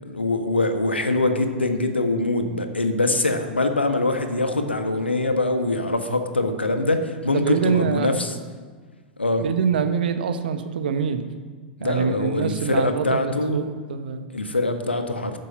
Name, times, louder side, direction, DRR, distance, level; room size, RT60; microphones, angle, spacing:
voice 1, 0.1-8.4 9.2-9.4 11.8-13.6 14.3-15.4, left 2 dB, 85° left, 7 dB, 1.4 m, -23 dB
voice 2, 7.3-8.1 9.4-11.2 11.8-14.3, right 7 dB, 60° right, 8 dB, 1.2 m, -25 dB
13.0 x 10.0 x 5.8 m, 1.5 s
figure-of-eight pair, 100°, 6 cm